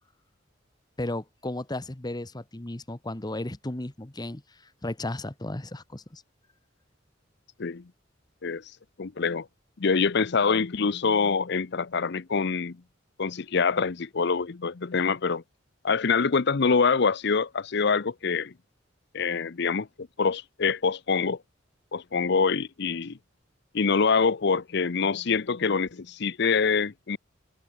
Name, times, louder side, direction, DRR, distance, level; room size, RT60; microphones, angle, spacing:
voice 1, 1.0-6.2, left 1 dB, 20° left, 1.1 m, -35 dB
voice 2, 9.0-9.5 9.8-12.8 13.2-15.4 15.8-18.5 19.1-21.4 21.9-23.2 23.7-27.2, left 5 dB, 60° left, 0.7 m, -25 dB
head